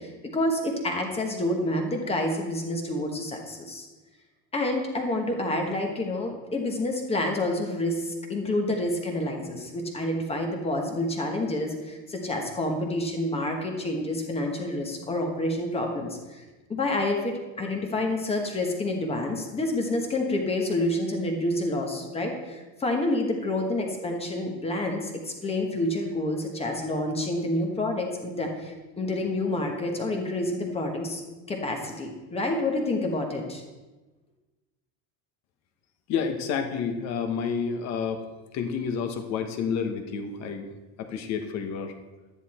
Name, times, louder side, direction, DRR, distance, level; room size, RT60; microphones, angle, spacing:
voice 1, 0.0-3.9 4.5-16.4 16.7-31.2 31.5-33.6, left 1 dB, 15° left, 2 dB, 1.2 m, -28 dB
voice 2, 36.1-38.2 38.5-40.7 41.0-41.9, left 6 dB, 40° left, 7 dB, 1.2 m, -29 dB
11.5 x 10.0 x 4.3 m, 1.2 s
cardioid pair, 170°, 40 cm